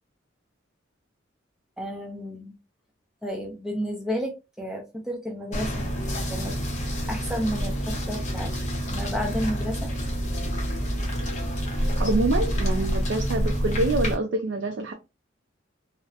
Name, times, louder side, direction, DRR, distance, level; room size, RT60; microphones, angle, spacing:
voice 1, 1.8-2.5 3.2-5.9 6.3-6.5 7.1-8.5 8.8-9.9, equal, 5° right, 0.5 m, -31 dB
sound 1, 5.5-14.1, equal, 40° left, 0.7 m, -27 dB
voice 2, 11.7-14.9, right 2 dB, 60° right, 0.3 m, -26 dB
2.7 x 2.0 x 2.3 m
head